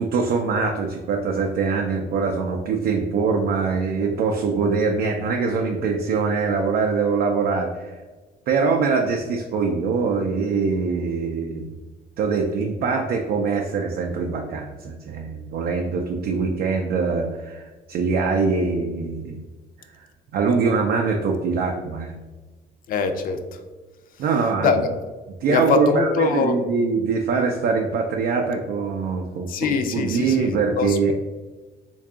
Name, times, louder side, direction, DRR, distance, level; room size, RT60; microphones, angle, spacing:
voice 1, 0.0-7.9 8.5-11.7 12.2-19.4 20.3-22.2 24.2-24.7 25.4-31.1, right 4 dB, 65° right, 2 dB, 0.4 m, -23 dB
voice 2, 22.9-23.6 24.6-24.9 25.5-26.6 29.5-31.1, left 5 dB, 55° left, 7 dB, 0.4 m, -23 dB
3.6 x 2.3 x 3.6 m, 1.3 s
cardioid pair, 110°, 17 cm